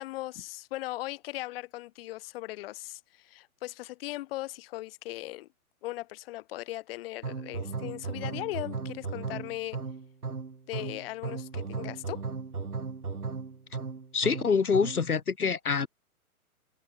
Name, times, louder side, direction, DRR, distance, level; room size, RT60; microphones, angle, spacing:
voice 1, 0.0-5.5 5.8-9.8 10.7-12.2, left 17 dB, 40° left, 3.0 m, -38 dB
sound 1, 7.2-15.1, right 4 dB, 85° right, 5.1 m, -36 dB
voice 2, 14.1-15.9, left 5 dB, 80° left, 2.4 m, -26 dB
figure-of-eight pair, 125°, 44 cm